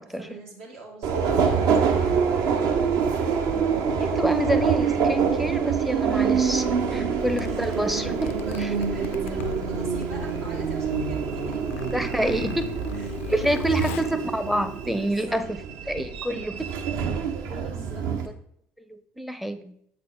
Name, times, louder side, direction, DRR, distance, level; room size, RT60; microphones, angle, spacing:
voice 1, 0.1-2.5 6.8-7.8 8.2-14.0 15.1-15.4 17.7-18.1, right 3 dB, 80° right, -4 dB, 1.7 m, -43 dB
Subway metro underground, 1.0-18.3, right 6 dB, 60° right, 0.7 m, -26 dB
voice 2, 3.5-8.7 11.9-12.7 13.3-15.5 15.9-16.7 17.0-17.1 17.5-18.1 18.9-19.7, right 1 dB, ahead, 9 dB, 0.5 m, -28 dB
Zipper (clothing), 7.2-15.2, left 9 dB, 75° left, 0.4 m, -38 dB
7.6 x 3.9 x 3.6 m, 0.69 s
figure-of-eight pair, 60°, 7 cm